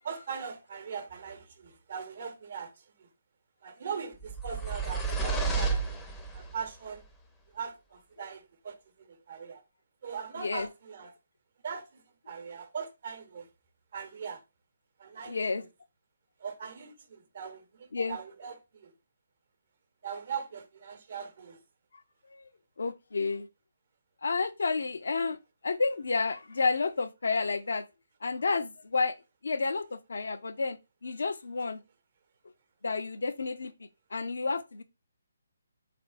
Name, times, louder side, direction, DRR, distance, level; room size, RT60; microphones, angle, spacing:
voice 1, 0.0-2.7 3.0-3.1 3.6-5.9 6.3-7.0 7.5-8.8 9.1-9.6 10.0-11.1 11.6-13.5 13.9-14.4 15.0-15.4 16.4-18.9 20.0-21.6, right 6 dB, 50° right, 0.9 m, -40 dB
sound 1, 4.2-6.6, right 4 dB, 10° left, 0.6 m, -31 dB
voice 2, 10.4-10.7 15.3-15.6 17.9-18.2 22.3-22.5 22.8-23.5 24.2-25.4 25.6-27.8 28.2-29.1 29.4-30.8 31.0-31.8 32.8-33.7 34.1-34.8, left 4 dB, 65° left, 0.5 m, -30 dB
3.8 x 3.4 x 2.5 m
figure-of-eight pair, 140°, 0 cm